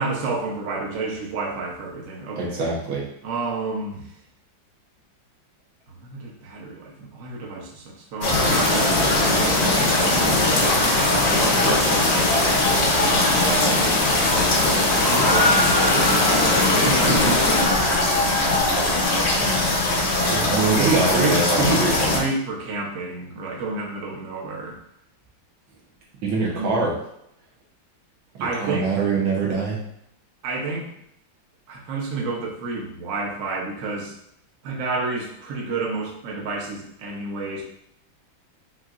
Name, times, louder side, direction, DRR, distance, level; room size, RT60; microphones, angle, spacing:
voice 1, 0.0-2.7 3.2-4.1 5.9-9.8 10.5-11.0 12.7-13.7 15.0-16.3 16.6-17.2 18.2-19.9 20.5-24.8 26.3-26.9 28.4-28.9 30.4-30.9 31.7-34.1 34.6-37.6, right 3 dB, 55° right, -2 dB, 1.0 m, -30 dB
voice 2, 2.4-3.0 16.8-17.3 20.3-22.2 26.2-26.9 28.6-29.8, right 3 dB, 80° right, -4 dB, 1.8 m, -24 dB
sound 1, 8.2-22.2, left 2 dB, 55° left, 0.8 m, -21 dB
sound 2, 8.3-17.7, left 2 dB, 85° left, 1.7 m, -23 dB
5.8 x 2.6 x 2.5 m, 0.75 s
omnidirectional pair, 2.1 m